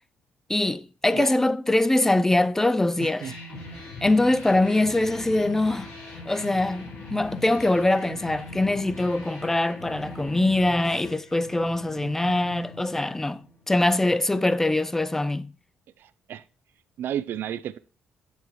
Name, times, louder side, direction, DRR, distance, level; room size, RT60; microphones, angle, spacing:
voice 1, 0.5-3.3 4.0-5.9 6.3-15.5, left 2 dB, 10° left, 0.4 m, -23 dB
voice 2, 3.0-3.4 16.0-16.4 17.0-17.8, right 10 dB, 65° right, 0.4 m, -32 dB
sound 1, 3.2-13.7, left 2 dB, 90° left, 2.9 m, -41 dB
8.1 x 6.9 x 3.1 m
cardioid pair, 100°, 4 cm